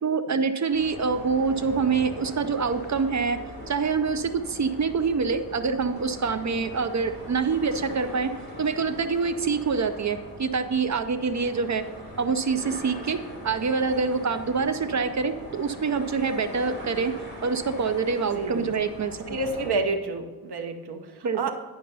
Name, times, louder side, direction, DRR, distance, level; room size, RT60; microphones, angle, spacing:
voice 1, 0.0-3.4 3.7-8.3 8.6-11.8 12.2-13.2 13.4-17.1 17.4-19.2 21.2-21.5, right 5 dB, 45° right, 9 dB, 0.5 m, -26 dB
sound 1, 0.7-19.7, left 1 dB, 25° left, 3.1 m, -41 dB
voice 2, 18.3-18.7 19.3-21.5, right 3 dB, 70° right, 6 dB, 1.1 m, -29 dB
10.0 x 5.7 x 5.3 m, 1.3 s
wide cardioid pair, 160°, 40 cm